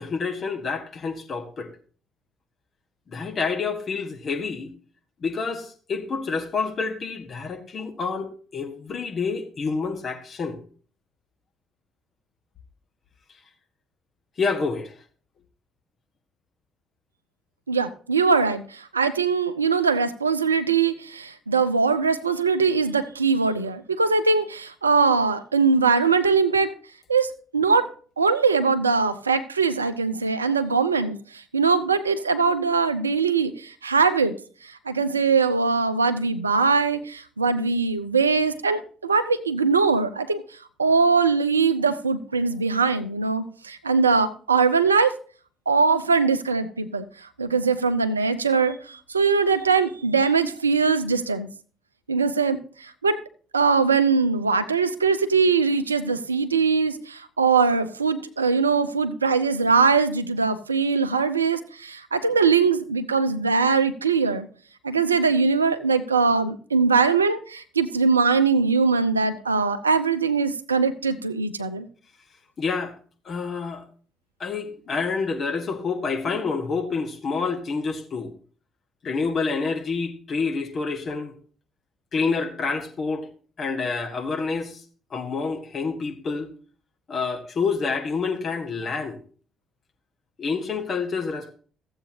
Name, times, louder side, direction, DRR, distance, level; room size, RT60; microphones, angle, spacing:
voice 1, 0.0-1.7 3.1-4.7 5.2-10.6 14.4-14.9 72.6-72.9 73.2-73.8 74.4-78.3 79.0-81.3 82.1-83.3 83.6-84.8 85.1-86.5 87.1-89.2 90.4-91.5, left 4 dB, 45° left, 1.4 m, -28 dB
voice 2, 17.7-26.7 27.1-27.9 28.2-31.2 31.5-34.3 34.9-40.4 40.8-45.1 45.7-47.0 47.4-51.5 52.1-52.6 53.0-53.2 53.5-64.5 64.8-71.9, right 5 dB, 85° right, 0.5 m, -21 dB
14.5 x 7.9 x 2.8 m
figure-of-eight pair, 45°, 0 cm